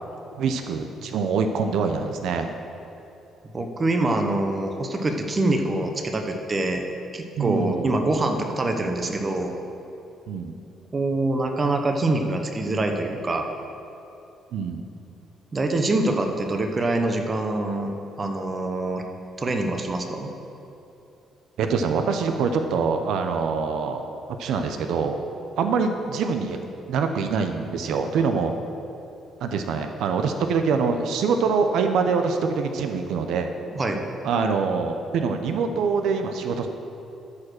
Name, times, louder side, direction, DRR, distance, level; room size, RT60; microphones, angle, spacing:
voice 1, 0.3-2.5 7.4-7.9 10.3-10.5 14.5-14.8 21.6-24.1 24.4-25.2 25.6-26.6 26.9-28.5 29.4-33.5 34.2-36.7, right 5 dB, 75° right, 6 dB, 0.7 m, -24 dB
voice 2, 3.5-6.8 7.1-9.5 10.9-13.5 15.5-17.9 18.2-19.0 19.4-20.3 33.7-34.0, right 2 dB, 25° right, 4 dB, 0.8 m, -25 dB
13.0 x 4.9 x 6.4 m, 2.9 s
cardioid pair, 145°, 0 cm